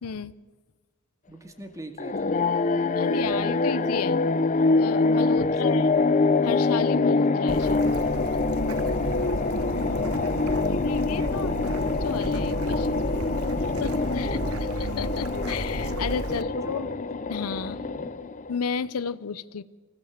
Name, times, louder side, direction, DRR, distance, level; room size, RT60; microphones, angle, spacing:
voice 1, 0.0-0.3 2.9-4.2 4.8-5.9 6.4-7.9 10.2-10.4 10.7-11.5 11.8-13.1 13.8-14.4 14.8-16.9 17.3-17.8 18.5-19.6, left 6 dB, 90° left, 18 dB, 0.6 m, -32 dB
voice 2, 1.3-2.3 5.5-5.8 8.8-9.9 13.8-14.7 16.3-16.9 17.7-18.1, right 1 dB, 15° right, 6 dB, 2.0 m, -43 dB
sound 1, 2.0-18.6, left 3 dB, 35° left, 0.6 m, -25 dB
Bird / Stream, 7.5-16.4, right 3 dB, 85° right, 0.9 m, -33 dB
24.5 x 16.0 x 7.3 m, 1.4 s
head